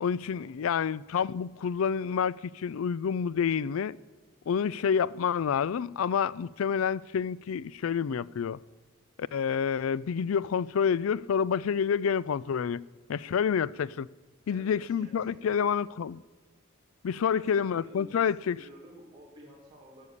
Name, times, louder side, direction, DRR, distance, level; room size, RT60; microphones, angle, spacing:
voice 1, 0.0-4.0 4.5-8.6 9.3-12.8 13.1-14.1 14.5-16.2 17.0-18.6, left 7 dB, 85° left, 0.4 m, -28 dB
voice 2, 14.5-15.6 17.2-20.1, right 1 dB, 20° right, 2.1 m, -52 dB
14.5 x 6.8 x 9.8 m
head